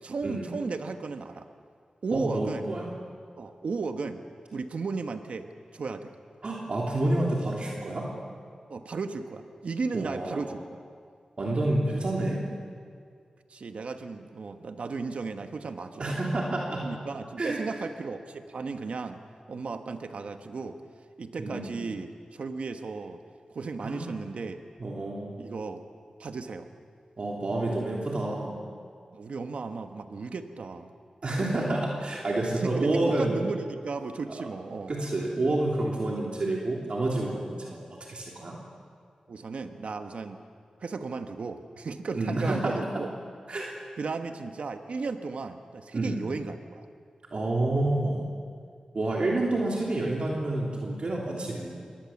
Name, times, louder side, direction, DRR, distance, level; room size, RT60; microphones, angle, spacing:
voice 1, 0.0-1.5 2.0-2.7 3.4-4.2 4.5-5.5 5.7-6.1 8.7-10.6 13.5-16.1 16.8-19.2 19.5-20.8 21.2-23.2 23.5-24.6 25.4-25.8 26.2-26.7 29.1-30.9 32.4-34.9 39.3-40.4 40.8-43.1 44.0-46.8, right 4 dB, 80° right, 7 dB, 1.3 m, -35 dB
voice 2, 2.1-2.9 6.4-8.1 9.9-10.5 11.4-12.4 16.0-16.9 17.4-17.6 21.4-21.7 23.8-24.1 24.8-25.5 27.2-28.6 31.2-33.3 34.9-37.8 38.1-38.6 42.1-42.7 43.5-43.7 45.9-46.2 47.3-48.2 48.9-51.8, right 2 dB, 60° right, -3 dB, 3.2 m, -29 dB
23.0 x 18.5 x 7.3 m, 2.1 s
wide cardioid pair, 70°, 2 cm